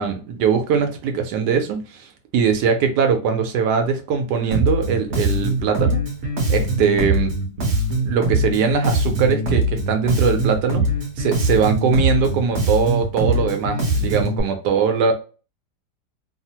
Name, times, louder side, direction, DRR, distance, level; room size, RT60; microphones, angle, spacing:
voice 1, 0.0-2.1 2.3-6.0 6.5-7.3 8.0-10.8 11.2-15.1, right 6 dB, 70° right, 1.2 m, -21 dB
Bass guitar, 4.5-14.4, right 1 dB, 50° right, 1.0 m, -22 dB
3.2 x 2.0 x 2.8 m
omnidirectional pair, 1.9 m